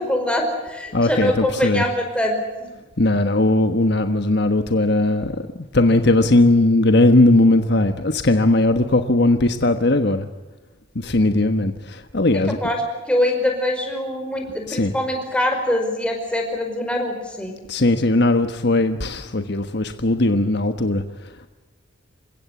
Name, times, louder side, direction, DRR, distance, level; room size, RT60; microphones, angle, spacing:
voice 1, 0.0-2.7 12.6-12.8 13.1-17.6, left 1 dB, 5° left, 3 dB, 5.2 m, -23 dB
voice 2, 0.9-1.9 3.0-10.3 10.9-12.6 14.7-14.9 17.7-21.5, left 2 dB, 55° left, 8 dB, 1.3 m, -18 dB
28.5 x 16.0 x 8.3 m, 1.2 s
head